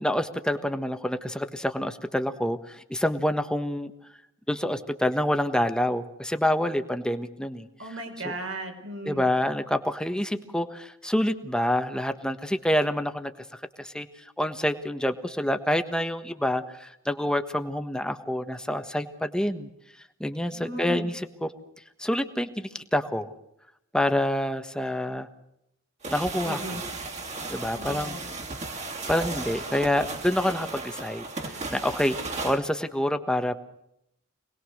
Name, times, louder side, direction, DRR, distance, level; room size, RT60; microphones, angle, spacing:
voice 1, 0.0-3.9 4.5-7.7 9.0-13.3 13.8-14.1 14.4-19.7 20.2-21.1 21.4-21.5 22.0-23.3 23.9-25.3 26.1-26.8 27.5-28.2 29.1-33.5, left 1 dB, 5° left, 8 dB, 1.4 m, -27 dB
voice 2, 7.8-9.3 20.5-21.1 26.4-26.8 27.8-28.2, right 1 dB, 65° right, 4 dB, 5.4 m, -36 dB
sound 1, 26.0-32.6, right 3 dB, 35° right, 3.1 m, -35 dB
26.5 x 20.0 x 6.5 m, 0.80 s
head